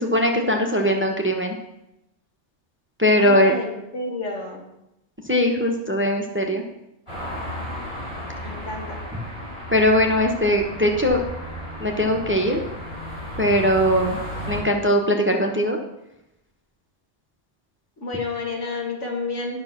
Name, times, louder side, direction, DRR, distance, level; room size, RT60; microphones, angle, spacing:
voice 1, 0.0-1.6 3.0-3.5 5.2-6.6 9.7-11.2 11.8-12.6 13.4-14.2 14.5-15.8, equal, 10° right, 2 dB, 0.9 m, -20 dB
voice 2, 3.2-4.6 8.4-9.0 18.0-19.6, left 3 dB, 85° left, 0 dB, 2.1 m, -30 dB
sound 1, 7.1-14.6, equal, 25° left, 4.1 m, -33 dB
9.5 x 6.0 x 5.9 m, 0.87 s
omnidirectional pair, 1.2 m